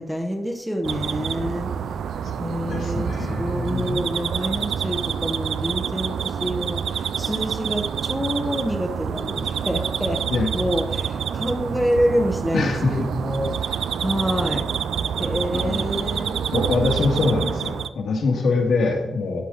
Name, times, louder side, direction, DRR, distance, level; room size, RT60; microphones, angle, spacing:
voice 1, 0.0-1.7 2.4-10.2 10.5-14.7 15.2-16.5, equal, ahead, 4 dB, 0.8 m, -27 dB
sound 1, 0.8-17.9, right 8 dB, 85° right, 0.4 m, -27 dB
voice 2, 2.5-4.0 10.3-10.5 12.5-13.1 15.5-16.1 16.5-19.4, left 3 dB, 70° left, 1 dB, 2.0 m, -24 dB
12.5 x 5.5 x 4.0 m, 0.95 s
wide cardioid pair, 170°, 0 cm